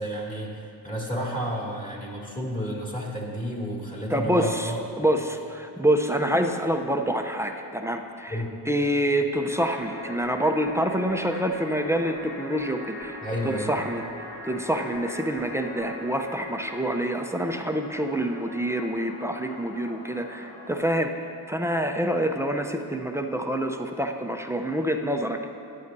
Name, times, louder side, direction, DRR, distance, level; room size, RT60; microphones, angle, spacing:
voice 1, 0.0-4.8 8.3-8.6 13.2-13.7, equal, 15° left, -4 dB, 2.4 m, -31 dB
voice 2, 4.1-13.2 13.4-14.0 14.4-21.1 21.5-25.5, right 1 dB, 5° right, 4 dB, 0.6 m, -26 dB
sound 1, 9.5-20.8, left 1 dB, 55° left, 2.5 m, -41 dB
14.0 x 10.0 x 2.7 m, 2.8 s
cardioid pair, 75°, 47 cm